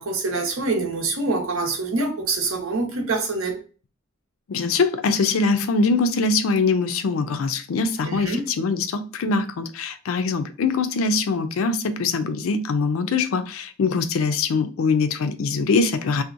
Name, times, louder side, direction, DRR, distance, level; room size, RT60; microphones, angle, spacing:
voice 1, 0.0-3.6 8.0-8.4, right 3 dB, 90° right, 0.8 m, -25 dB
voice 2, 4.5-16.2, left 4 dB, 90° left, 0.4 m, -23 dB
2.7 x 2.1 x 2.4 m
head